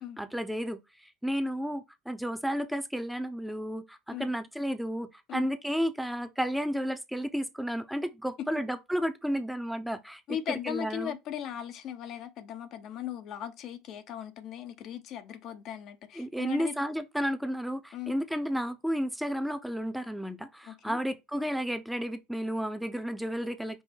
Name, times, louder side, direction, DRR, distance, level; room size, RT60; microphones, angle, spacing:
voice 1, 0.2-10.2 10.6-11.1 16.2-23.8, equal, ahead, 0.6 m, -32 dB
voice 2, 10.3-16.7 17.9-18.1 20.7-21.0, left 10 dB, 55° left, 0.6 m, -38 dB
5.5 x 2.1 x 4.2 m
hypercardioid pair, 80°, 0 cm